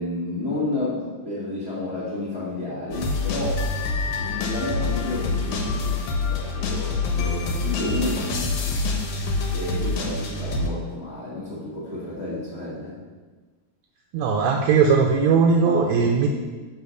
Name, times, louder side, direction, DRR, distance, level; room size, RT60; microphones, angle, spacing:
voice 1, 0.0-3.7 4.2-8.8 9.5-13.0 15.6-16.1, left 2 dB, 25° left, -8 dB, 1.5 m, -31 dB
sound 1, 2.9-10.7, left 3 dB, 75° left, 2.4 m, -26 dB
voice 2, 14.1-16.3, right 5 dB, 75° right, 2 dB, 1.8 m, -19 dB
9.6 x 4.8 x 6.8 m, 1.4 s
omnidirectional pair, 3.5 m